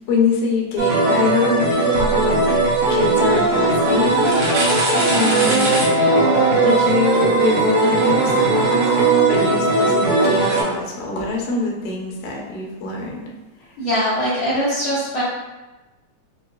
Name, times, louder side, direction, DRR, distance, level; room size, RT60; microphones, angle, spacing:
voice 1, 0.1-2.6 2.9-5.7 6.5-13.3, left 3 dB, 85° left, -1 dB, 2.3 m, -24 dB
sound 1, 0.8-10.6, right 2 dB, 75° right, 1.3 m, -18 dB
voice 2, 13.8-15.2, equal, 55° left, -14 dB, 1.5 m, -21 dB
5.8 x 2.3 x 2.2 m, 1.1 s
omnidirectional pair, 3.9 m